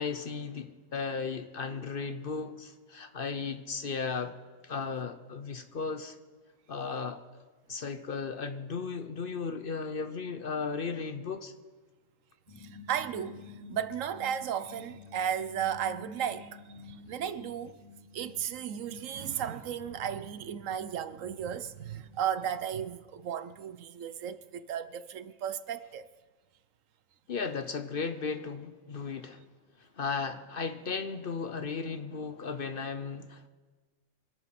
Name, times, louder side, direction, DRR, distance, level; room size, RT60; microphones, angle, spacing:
voice 1, 0.0-4.4 4.6-6.2 6.7-7.2 7.7-11.5 27.3-29.4 29.8-33.5, left 5 dB, 50° left, 0.8 m, -35 dB
sound 1, 12.5-24.1, left 5 dB, 25° left, 2.1 m, -52 dB
voice 2, 12.6-17.8 18.1-26.1, right 9 dB, 75° right, 1.1 m, -35 dB
25.0 x 9.2 x 5.9 m
omnidirectional pair, 1.4 m